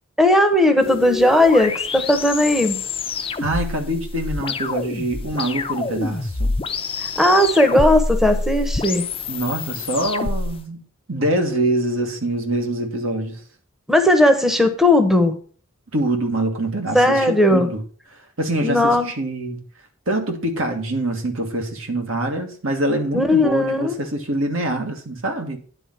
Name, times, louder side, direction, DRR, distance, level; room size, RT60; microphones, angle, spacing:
voice 1, 0.2-2.8 7.0-9.0 13.9-15.4 16.9-17.7 18.6-19.1 23.1-24.0, left 1 dB, ahead, 0.9 m, -17 dB
sound 1, 0.8-10.6, left 3 dB, 25° left, 0.6 m, -27 dB
voice 2, 3.4-6.5 9.3-10.8 11.1-13.4 15.9-17.8 18.1-19.6 20.1-25.6, right 1 dB, 70° right, 1.8 m, -24 dB
9.9 x 4.0 x 7.3 m
head